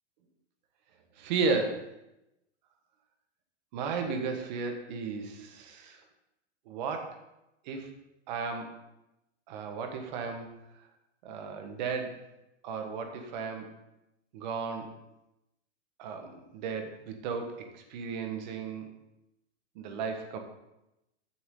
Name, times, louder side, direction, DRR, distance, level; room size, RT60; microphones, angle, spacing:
voice 1, 1.2-1.9 3.7-6.0 6.7-7.2 7.6-7.9 8.3-8.8 9.5-10.5 11.2-12.2 12.6-13.7 14.3-15.0 16.0-18.9 19.7-20.4, right 4 dB, 40° right, 5 dB, 1.5 m, -34 dB
15.0 x 7.0 x 3.8 m, 0.90 s
hypercardioid pair, 160°, 35 cm